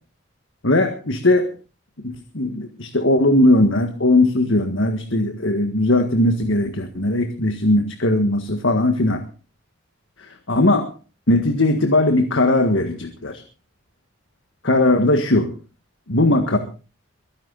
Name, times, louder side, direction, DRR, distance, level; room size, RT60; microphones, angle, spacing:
voice 1, 0.6-1.5 2.0-9.2 10.2-10.9 11.3-13.4 14.6-15.5 16.1-16.6, left 1 dB, 70° left, 7 dB, 1.7 m, -19 dB
23.5 x 10.5 x 4.1 m, 0.36 s
head